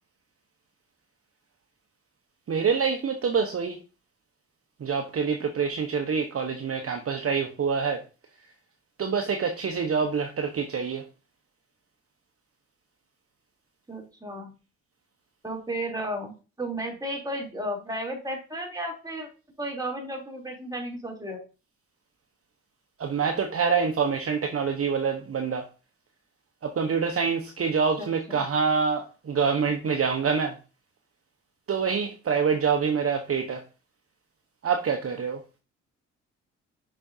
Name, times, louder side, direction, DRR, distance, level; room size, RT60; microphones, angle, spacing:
voice 1, 2.5-3.8 4.8-8.0 9.0-11.0 23.0-25.7 26.6-30.5 31.7-33.6 34.6-35.4, right 6 dB, 45° right, 4 dB, 1.1 m, -26 dB
voice 2, 13.9-14.5 15.4-19.3 19.6-21.4 28.0-28.4, right 1 dB, 10° right, 0 dB, 3.2 m, -34 dB
6.7 x 6.0 x 2.7 m, 0.33 s
supercardioid pair, 60°, 33 cm